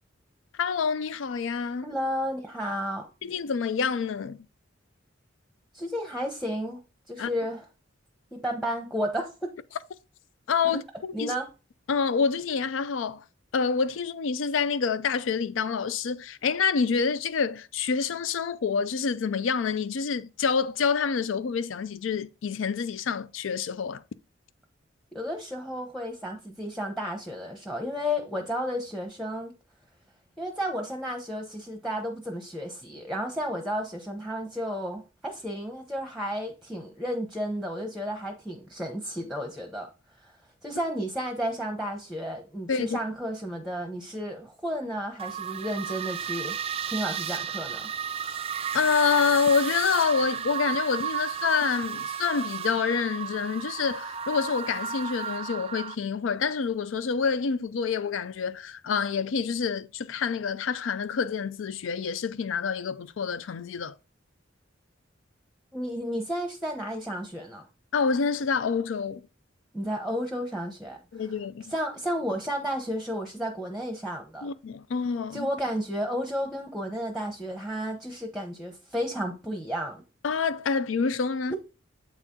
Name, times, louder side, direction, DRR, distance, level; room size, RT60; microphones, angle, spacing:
voice 1, 0.6-1.9 3.2-4.5 7.2-7.3 10.5-11.3 11.9-13.2 13.5-24.0 42.7-43.0 48.7-63.9 67.9-69.3 71.1-71.7 74.4-75.5 80.2-81.5, left 5 dB, 80° left, 0.4 m, -27 dB
voice 2, 1.8-3.1 5.7-6.8 7.1-7.6 8.3-9.5 11.1-11.5 25.1-29.5 30.4-39.9 40.2-40.3 40.6-46.6 46.9-47.9 65.7-67.7 69.7-71.0 71.7-74.5 75.3-80.0 81.5-81.6, equal, ahead, 0.8 m, -32 dB
sound 1, 45.2-56.0, right 8 dB, 30° right, 0.3 m, -33 dB
7.9 x 4.1 x 3.6 m
head